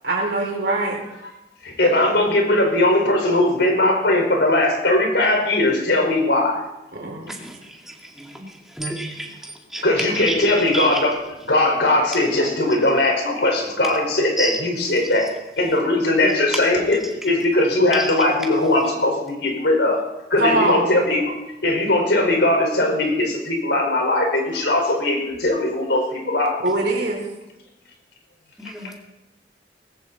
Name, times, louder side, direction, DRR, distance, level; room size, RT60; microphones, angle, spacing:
voice 1, 0.0-1.0 6.9-7.3 20.4-20.9 26.6-27.2, right 2 dB, 75° right, -1 dB, 3.4 m, -22 dB
voice 2, 1.6-6.6 9.8-15.3 15.6-20.0 20.3-21.2 21.6-26.6, left 1 dB, 85° left, 2 dB, 4.9 m, -19 dB
voice 3, 8.8-9.3 9.7-9.8 10.3-10.4 10.7-10.9 14.4-14.6 16.2-16.3 28.6-29.0, right 1 dB, ahead, -1 dB, 2.2 m, -28 dB
19.5 x 16.5 x 4.2 m, 0.94 s
head